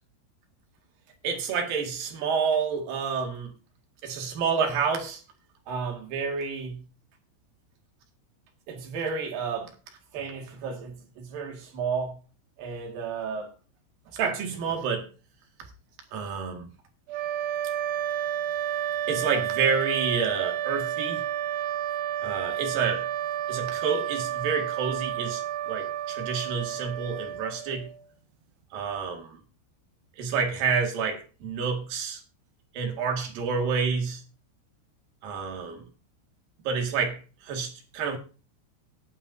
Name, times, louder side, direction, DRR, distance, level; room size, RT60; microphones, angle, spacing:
voice 1, 1.2-3.5 4.0-5.2 5.7-6.8 8.7-9.7 10.1-12.2 12.6-13.5 14.1-15.1 16.1-16.7 19.1-21.2 22.2-23.1 23.5-27.9 28.7-29.4 30.2-32.2 32.7-34.2 35.2-35.8 36.7-38.2, right 5 dB, 60° right, 3.5 m, -29 dB
sound 1, 17.1-28.0, right 11 dB, 85° right, 2.9 m, -31 dB
20.5 x 8.7 x 2.7 m
omnidirectional pair, 4.7 m